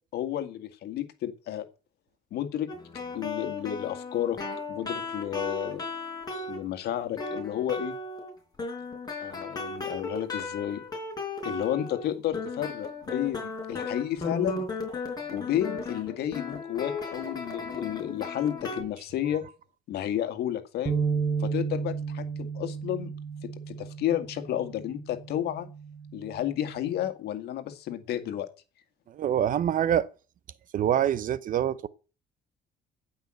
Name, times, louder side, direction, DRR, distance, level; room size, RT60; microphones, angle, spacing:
voice 1, 0.1-1.7 2.3-2.7 3.1-4.4 4.7-5.8 6.5-7.9 9.2-10.8 11.4-14.6 15.3-19.4 19.9-21.0 21.4-23.1 23.4-25.7 26.1-28.5, left 11 dB, 70° left, 1.9 m, -31 dB
sound 1, 2.7-6.7 7.2-8.3 8.6-12.1 12.3-18.8, left 3 dB, 25° left, 4.7 m, -35 dB
sound 2, 20.9-27.1, right 6 dB, 10° right, 1.8 m, -33 dB
voice 2, 29.1-30.1 30.7-31.9, right 10 dB, 50° right, 0.7 m, -25 dB
16.0 x 5.7 x 7.7 m
cardioid pair, 110°, 17 cm